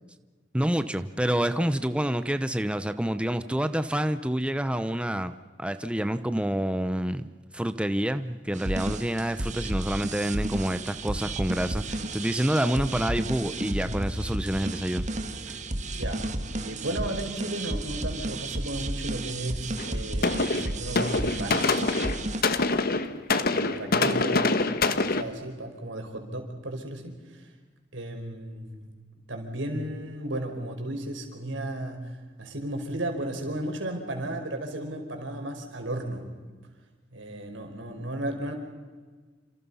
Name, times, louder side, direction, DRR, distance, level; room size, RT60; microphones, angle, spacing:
voice 1, 0.5-7.2 7.5-15.0 15.5-15.6, right 1 dB, 5° right, 10 dB, 0.8 m, -28 dB
sound 1, 8.5-22.4, right 2 dB, 40° right, 1.7 m, -32 dB
voice 2, 16.0-16.3 16.6-21.8 22.4-22.9 23.4-24.7 25.0-27.5 27.9-28.8 29.3-36.3 37.1-38.5, right 1 dB, 90° right, 3 dB, 5.2 m, -34 dB
sound 2, 19.8-20.0 20.2-25.2, left 3 dB, 55° left, 1.4 m, -25 dB
29.0 x 27.0 x 5.6 m, 1.4 s
head